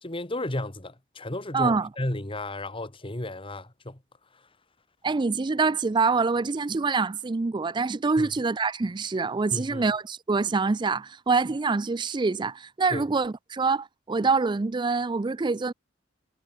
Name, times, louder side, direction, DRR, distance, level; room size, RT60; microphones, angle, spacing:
voice 1, 0.0-4.0 8.2-8.3 9.5-9.9 12.9-13.1, left 1 dB, 30° left, 2.1 m, -33 dB
voice 2, 1.5-1.9 5.0-15.7, right 4 dB, 25° right, 0.4 m, -25 dB
head